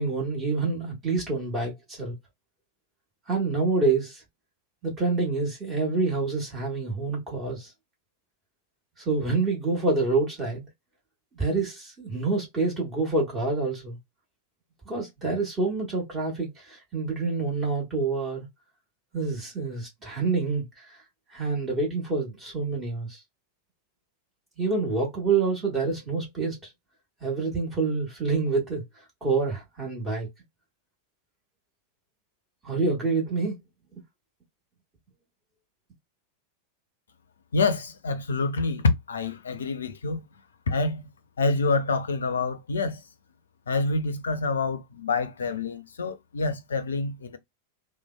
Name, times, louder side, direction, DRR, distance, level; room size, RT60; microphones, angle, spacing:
voice 1, 0.0-2.1 3.3-4.2 4.8-7.7 9.0-10.6 11.3-14.0 14.8-18.5 19.1-21.0 21.3-23.2 24.6-26.6 27.2-28.8 29.2-30.3 32.6-33.6, right 3 dB, 20° right, 1.5 m, -27 dB
voice 2, 37.5-40.2 40.7-41.0 41.4-43.0 43.7-47.4, left 3 dB, 70° left, 0.5 m, -27 dB
3.2 x 2.1 x 2.3 m
figure-of-eight pair, 90°, 0 cm